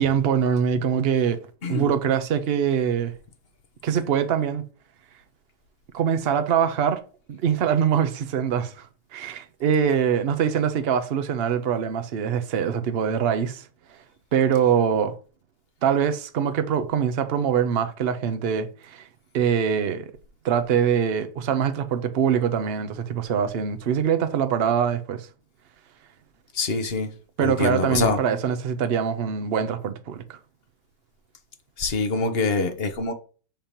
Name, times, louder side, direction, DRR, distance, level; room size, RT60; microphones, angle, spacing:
voice 1, 0.0-1.4 1.7-3.1 3.8-4.6 5.9-7.0 7.3-8.9 9.1-13.7 14.3-15.1 15.8-19.1 19.3-20.1 20.4-25.3 27.4-30.2, right 8 dB, 60° right, 0.6 m, -23 dB
voice 2, 1.6-1.9 26.5-27.1 27.4-28.2 31.8-33.1, left 3 dB, 45° left, 0.9 m, -25 dB
7.2 x 2.9 x 5.2 m
omnidirectional pair, 1.9 m